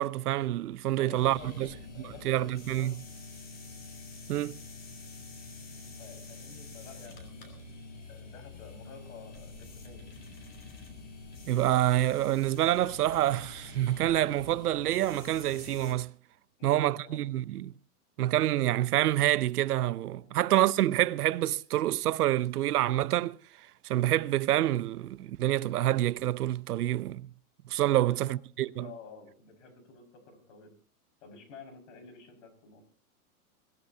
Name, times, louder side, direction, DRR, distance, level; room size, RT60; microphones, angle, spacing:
voice 1, 0.0-1.7 2.2-2.9 4.3-4.6 11.5-16.1 16.6-17.7 18.2-23.4 23.8-27.3 27.7-28.9, right 13 dB, 75° right, 0.8 m, -27 dB
voice 2, 1.0-3.0 5.7-7.8 8.1-10.0 16.6-17.2 20.2-20.5 27.9-28.4 28.7-30.7 31.2-32.8, left 5 dB, 55° left, 5.5 m, -51 dB
sound 1, 1.1-15.9, left 3 dB, 20° left, 3.2 m, -47 dB
23.0 x 16.5 x 2.7 m
supercardioid pair, 170°, 46 cm